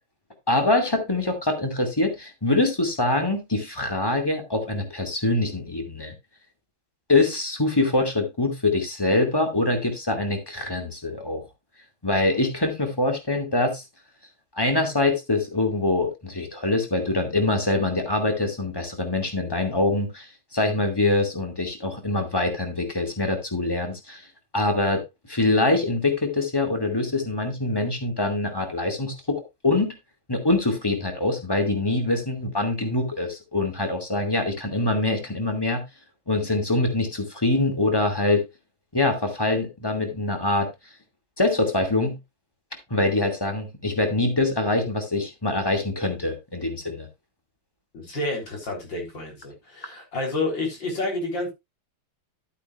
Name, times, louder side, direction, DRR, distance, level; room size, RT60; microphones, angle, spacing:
voice 1, 0.5-6.1 7.1-11.4 12.0-13.8 14.6-24.2 24.5-25.0 25.3-29.9 30.3-35.8 36.3-38.4 38.9-40.7 41.4-42.2 42.9-47.1, left 2 dB, 10° left, 4 dB, 2.3 m, -24 dB
voice 2, 47.9-51.5, left 2 dB, 60° left, 1 dB, 4.5 m, -29 dB
12.5 x 8.4 x 2.5 m, 0.22 s
omnidirectional pair, 2.3 m